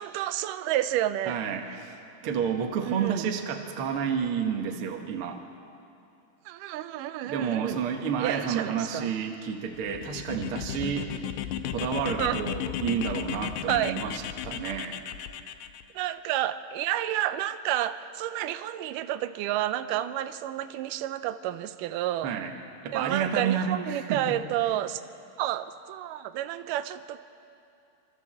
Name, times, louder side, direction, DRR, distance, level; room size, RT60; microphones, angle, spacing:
voice 1, 0.0-1.4 1.7-1.8 2.8-3.3 6.5-7.8 8.2-9.1 12.2-12.5 13.7-14.3 15.9-22.3 22.9-25.0 25.4-27.2, right 13 dB, 80° right, 12 dB, 2.1 m, -30 dB
voice 2, 1.3-5.4 7.2-11.1 11.7-15.0 22.2-22.5 22.8-24.4, right 7 dB, 55° right, 3 dB, 1.6 m, -30 dB
sound 1, 9.7-15.8, left 10 dB, 85° left, 2.5 m, -35 dB
26.5 x 13.5 x 7.5 m, 2.6 s
omnidirectional pair, 4.1 m